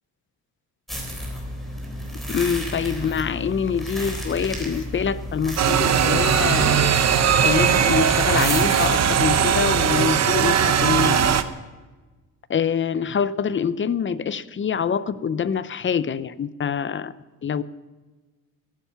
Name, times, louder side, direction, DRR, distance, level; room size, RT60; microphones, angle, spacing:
sound 1, 0.9-9.4, equal, ahead, 3.8 m, -32 dB
voice 1, 2.3-6.8 7.4-11.4 12.5-17.1 17.4-17.6, left 7 dB, 35° left, 16 dB, 0.5 m, -25 dB
sound 2, 5.6-11.4, right 8 dB, 45° right, 0.8 m, -19 dB
14.5 x 11.0 x 5.8 m, 1.3 s
cardioid pair, 130°, 37 cm